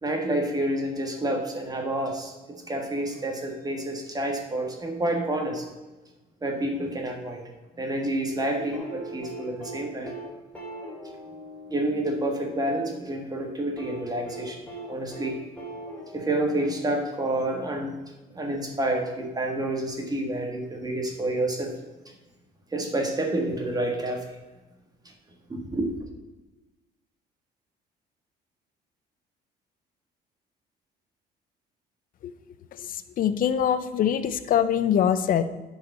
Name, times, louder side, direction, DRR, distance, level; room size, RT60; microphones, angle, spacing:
voice 1, 0.0-2.3 2.7-5.7 6.4-7.4 7.8-10.1 11.7-14.6 14.9-15.4 16.1-17.9 18.3-21.7 22.7-24.3 25.5-25.9, right 1 dB, 20° right, 2 dB, 1.6 m, -28 dB
sound 1, 8.7-12.8 13.8-17.4 18.8-18.9, right 1 dB, 10° left, 3.4 m, -41 dB
voice 2, 32.8-35.4, left 9 dB, 55° left, 12 dB, 0.7 m, -24 dB
9.3 x 4.9 x 6.7 m, 1.1 s
cardioid pair, 110°, 17 cm